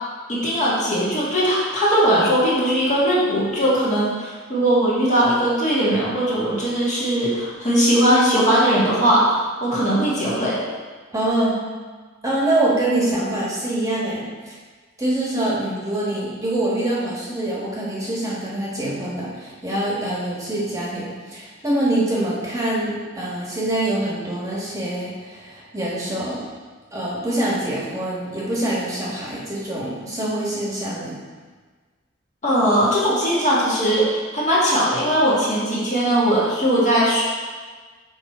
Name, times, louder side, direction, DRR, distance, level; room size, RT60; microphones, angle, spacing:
voice 1, 0.3-10.6 32.4-37.2, equal, 40° left, -7 dB, 2.0 m, -19 dB
voice 2, 11.1-11.6 12.2-14.6 15.0-26.4 26.9-31.2, right 1 dB, 15° right, -6 dB, 1.4 m, -25 dB
6.9 x 4.6 x 4.3 m, 1.4 s
head